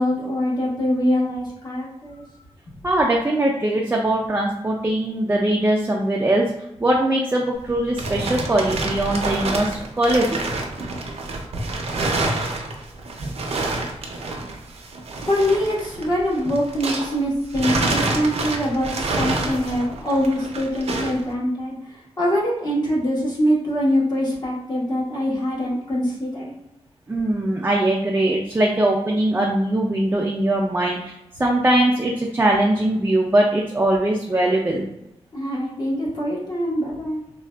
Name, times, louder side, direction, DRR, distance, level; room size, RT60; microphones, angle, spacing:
voice 1, 0.0-2.2 15.3-26.5 35.3-37.2, equal, 40° left, -6 dB, 1.2 m, -23 dB
voice 2, 2.8-6.5 6.8-10.4 11.3-11.4 27.1-31.1 31.4-34.8, right 1 dB, 20° right, -1 dB, 0.4 m, -21 dB
sound 1, 7.6-17.2 17.5-21.2, right 2 dB, 65° right, 0.5 m, -27 dB
3.6 x 2.3 x 2.2 m, 0.85 s
wide cardioid pair, 115°, 11 cm